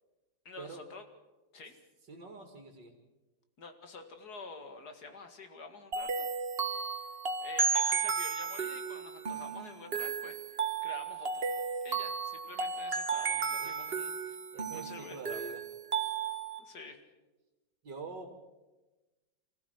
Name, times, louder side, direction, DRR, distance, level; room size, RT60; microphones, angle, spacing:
voice 1, 0.5-1.0 1.5-1.7 3.6-6.3 6.9-11.5 11.8-14.4 14.7-15.5 16.6-17.0, left 3 dB, 60° left, 7 dB, 2.6 m, -48 dB
voice 2, 2.1-2.9 13.6-13.8 14.5-15.6 17.8-18.3, right 4 dB, 75° right, 3 dB, 3.0 m, -45 dB
sound 1, 5.9-16.6, right 5 dB, 35° right, 1.6 m, -34 dB
25.5 x 15.0 x 8.0 m, 1.1 s
omnidirectional pair, 1.9 m